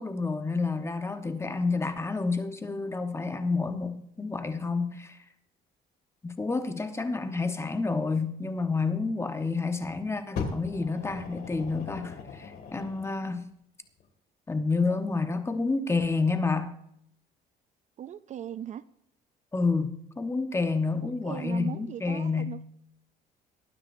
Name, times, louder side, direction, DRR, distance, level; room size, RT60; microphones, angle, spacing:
voice 1, 0.0-5.2 6.2-13.5 14.5-16.7 19.5-22.6, left 4 dB, 15° left, 8 dB, 1.0 m, -29 dB
Fire, 10.4-13.2 14.0-14.1, left 5 dB, 65° left, 2.2 m, -38 dB
voice 2, 18.0-18.8 21.0-22.7, right 10 dB, 45° right, 15 dB, 0.4 m, -39 dB
19.0 x 9.8 x 2.6 m, 0.75 s
cardioid pair, 110°, 17 cm